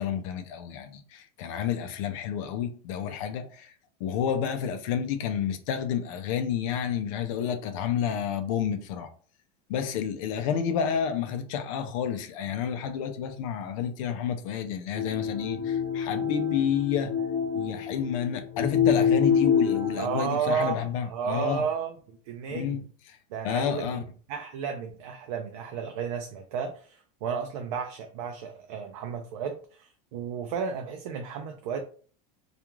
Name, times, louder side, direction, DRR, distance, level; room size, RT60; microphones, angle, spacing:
voice 1, 0.0-3.7 4.0-9.1 9.7-17.2 17.5-21.6 22.5-22.8 23.1-23.2 23.4-24.0, left 8 dB, 55° left, 0.4 m, -30 dB
sound 1, 14.9-20.2, left 7 dB, 30° left, 1.0 m, -26 dB
voice 2, 20.0-22.8 23.3-24.0 24.3-31.8, right 6 dB, 65° right, 0.5 m, -33 dB
2.4 x 2.3 x 3.0 m
supercardioid pair, 170°, 20 cm